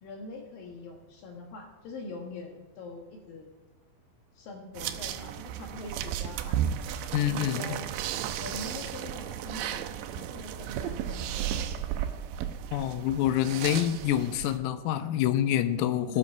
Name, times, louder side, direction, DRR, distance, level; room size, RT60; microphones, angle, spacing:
voice 1, 0.0-3.5 4.3-6.6 7.3-7.8 8.4-11.5 16.1-16.2, left 2 dB, 65° left, 1 dB, 2.3 m, -43 dB
sound 1, 4.8-14.6, right 10 dB, 80° right, 2.7 m, -34 dB
voice 2, 7.1-7.7 12.7-16.2, left 11 dB, 85° left, 10 dB, 3.5 m, -27 dB
15.0 x 13.5 x 5.5 m, 1.2 s
omnidirectional pair, 5.9 m